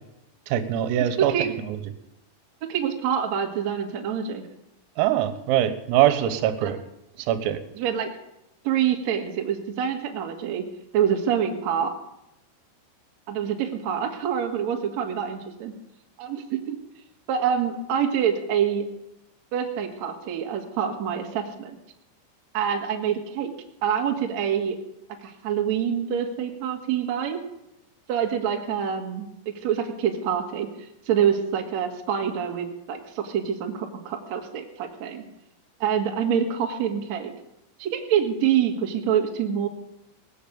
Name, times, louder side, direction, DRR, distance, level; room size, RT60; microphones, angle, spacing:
voice 1, 0.5-1.3 5.0-6.8 7.3-7.6, right 11 dB, 85° right, 10 dB, 3.7 m, -22 dB
voice 2, 2.7-4.4 6.6-6.7 7.7-8.1 8.6-10.6 10.9-11.9 13.3-15.7 16.2-16.8 17.3-18.9 19.5-21.7 22.5-23.5 23.8-24.8 25.2-27.4 28.1-30.7 31.1-35.2 35.8-37.3 37.8-39.7, right 8 dB, 55° right, 3 dB, 2.0 m, -26 dB
18.5 x 8.0 x 8.6 m, 0.86 s
omnidirectional pair, 5.9 m